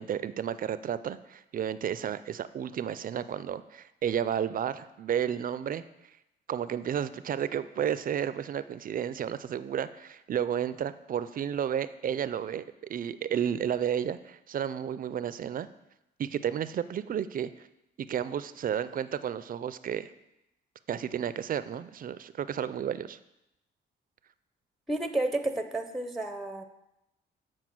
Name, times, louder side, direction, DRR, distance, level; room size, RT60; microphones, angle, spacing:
voice 1, 0.0-5.8 6.5-12.6 12.9-15.7 16.2-17.7 18.1-20.1 20.9-23.2, right 9 dB, 45° right, 14 dB, 0.4 m, -32 dB
voice 2, 24.9-26.6, right 2 dB, ahead, 7 dB, 0.6 m, -31 dB
8.1 x 4.5 x 6.0 m, 0.91 s
cardioid pair, 90°, 20 cm